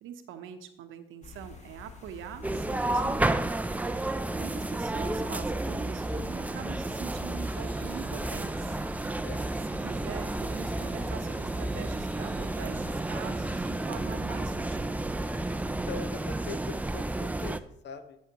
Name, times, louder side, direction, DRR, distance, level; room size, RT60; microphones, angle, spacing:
voice 1, 0.0-3.3 4.3-8.8 9.8-15.0, right 8 dB, 85° right, 8 dB, 0.9 m, -44 dB
sound 1, 1.2-15.8, left 3 dB, 35° left, 1.5 m, -48 dB
sound 2, 2.4-17.6, right 2 dB, 5° right, 0.4 m, -31 dB
Engine / Drill, 7.3-14.6, right 1 dB, 10° left, 1.2 m, -56 dB
voice 2, 15.6-18.2, left 5 dB, 65° left, 9 dB, 1.0 m, -42 dB
13.0 x 6.4 x 2.9 m, 0.80 s
cardioid pair, 90°, 20 cm